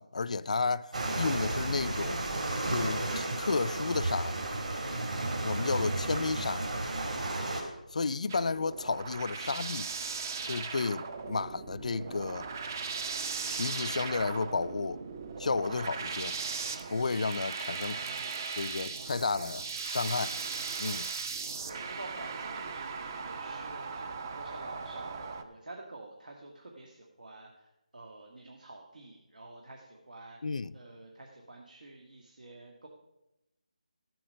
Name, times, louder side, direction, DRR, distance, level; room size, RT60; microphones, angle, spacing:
voice 1, 0.0-2.2 2.7-4.4 5.4-6.7 7.9-9.9 10.4-12.5 13.5-15.0 15.4-16.4 16.9-18.0 18.5-20.4 20.8-21.1 30.4-30.8, left 4 dB, 60° left, 0.4 m, -32 dB
sound 1, 0.9-7.6, right 2 dB, 60° right, 2.7 m, -33 dB
sound 2, 8.3-25.4, right 5 dB, 25° right, 0.5 m, -38 dB
voice 2, 17.1-17.4 17.8-18.1 21.6-27.7 27.9-30.4 30.7-32.9, right 2 dB, 80° right, 1.6 m, -49 dB
13.5 x 7.8 x 5.1 m
figure-of-eight pair, 170°, 4 cm